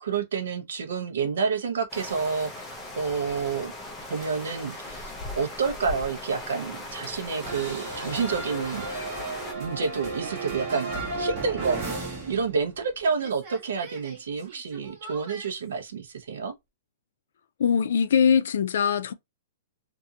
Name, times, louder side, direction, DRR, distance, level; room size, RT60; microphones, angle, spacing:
voice 1, 0.0-2.5 3.0-3.7 4.0-8.9 9.5-16.5, right 5 dB, 85° right, 0.8 m, -29 dB
sound 1, 1.9-9.5, left 1 dB, 10° left, 0.7 m, -39 dB
sound 2, 7.4-12.9 13.1-15.5, right 3 dB, 30° right, 1.2 m, -35 dB
voice 2, 17.6-19.1, left 7 dB, 75° left, 0.4 m, -22 dB
2.8 x 2.6 x 2.4 m
hypercardioid pair, 160°, 0 cm